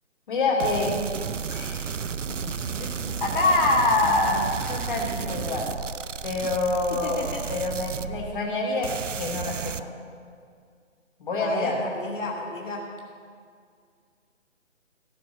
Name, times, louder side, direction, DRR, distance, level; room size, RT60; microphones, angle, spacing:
voice 1, 0.3-0.9 1.5-1.9 2.8-5.7 6.2-8.9 9.2-9.9 11.2-11.8, left 2 dB, 40° left, -1 dB, 2.7 m, -26 dB
sound 1, 0.6-8.6 8.8-9.8, right 6 dB, 75° right, 0.7 m, -33 dB
voice 2, 6.9-7.4 11.4-12.9, left 2 dB, 75° left, -1 dB, 2.3 m, -33 dB
16.5 x 6.2 x 8.0 m, 2.1 s
figure-of-eight pair, 150°, 38 cm